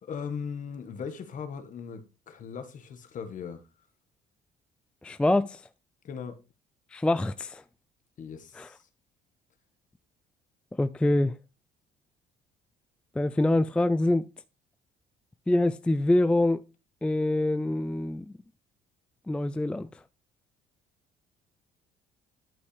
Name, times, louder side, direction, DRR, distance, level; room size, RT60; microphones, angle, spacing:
voice 1, 0.0-3.7 6.0-6.4 8.2-8.9, left 6 dB, 50° left, 1.5 m, -38 dB
voice 2, 5.0-5.6 6.9-7.6 8.6-8.7 10.8-11.3 13.2-14.2 15.5-16.6 17.0-18.2 19.3-19.9, left 1 dB, 5° left, 0.3 m, -25 dB
11.0 x 5.4 x 3.3 m
cardioid pair, 110°, 17 cm